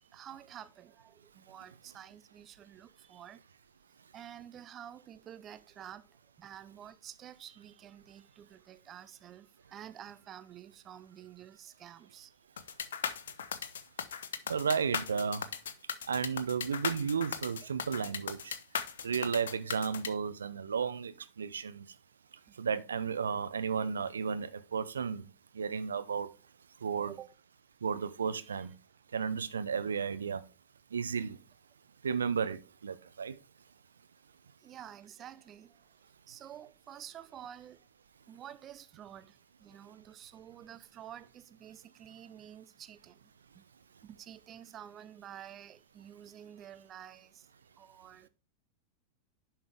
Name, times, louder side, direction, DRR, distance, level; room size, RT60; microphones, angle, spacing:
voice 1, 0.1-3.4 4.1-6.1 6.4-12.3 22.5-22.6 26.9-27.3 34.6-35.8 36.3-37.8 38.3-43.1 44.0-47.5 47.8-48.3, right 10 dB, 30° right, 0.4 m, -50 dB
sound 1, 12.6-20.1, left 7 dB, 65° left, 0.9 m, -37 dB
voice 2, 14.5-15.5 16.1-18.6 19.0-21.9 22.5-25.3 25.5-26.3 26.8-27.2 27.8-28.7 29.1-30.4 30.9-31.4 32.0-33.4, right 6 dB, 70° right, 0.7 m, -33 dB
10.5 x 5.8 x 3.4 m
figure-of-eight pair, 90°, 0 cm